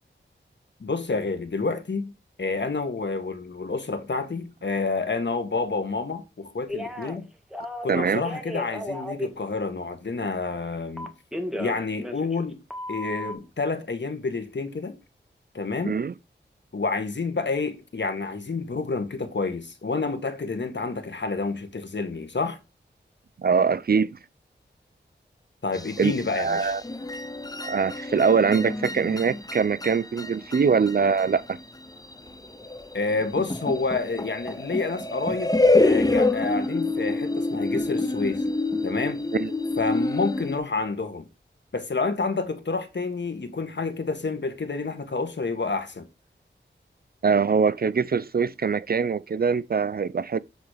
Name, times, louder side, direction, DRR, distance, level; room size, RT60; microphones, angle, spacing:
voice 1, 0.8-2.1 2.4-7.3 7.8-11.1 11.6-12.6 12.9-14.9 15.5-15.9 16.7-22.6 25.6-26.7 32.9-35.5 35.8-38.5 38.8-39.2 39.8-41.2 41.7-46.1, left 3 dB, 65° left, 1.6 m, -29 dB
Telephone, 6.7-7.2 7.5-9.3 11.0-12.5 12.7-13.4, left 1 dB, ahead, 1.8 m, -34 dB
voice 2, 7.9-8.2 15.8-16.1 23.4-24.2 26.0-26.8 27.6-31.6 39.3-39.5 47.2-50.4, right 5 dB, 50° right, 0.5 m, -23 dB
sound 1, 25.7-40.6, left 2 dB, 20° left, 0.8 m, -27 dB
8.1 x 4.0 x 5.0 m
cardioid pair, 50°, 20 cm